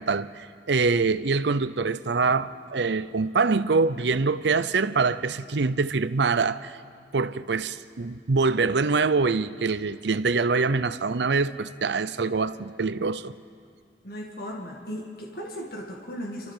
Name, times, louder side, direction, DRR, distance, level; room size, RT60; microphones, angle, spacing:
voice 1, 0.0-6.8 7.1-13.3, right 4 dB, 75° right, 0.6 m, -24 dB
voice 2, 14.0-16.5, equal, 55° left, 1.9 m, -36 dB
29.5 x 13.5 x 7.4 m
head